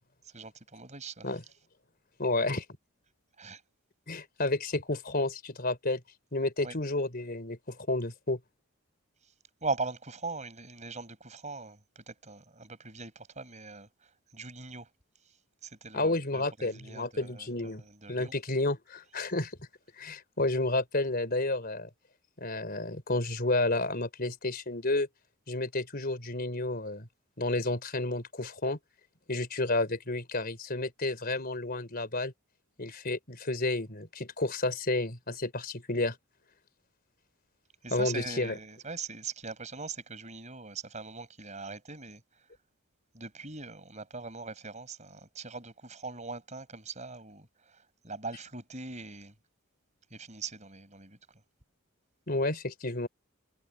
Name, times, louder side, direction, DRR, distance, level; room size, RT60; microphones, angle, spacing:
voice 1, 0.3-1.3 3.4-3.6 6.6-6.8 9.6-14.9 15.6-18.3 37.8-42.2 43.1-49.3 50.1-51.4, right 4 dB, 30° right, 5.6 m, -41 dB
voice 2, 2.2-2.6 4.1-6.0 6.3-8.4 15.9-17.8 18.1-19.6 20.0-21.9 22.4-25.1 25.5-27.1 27.4-28.8 29.3-32.3 32.8-36.2 37.9-38.5 52.3-53.1, left 2 dB, 45° left, 4.3 m, -31 dB
head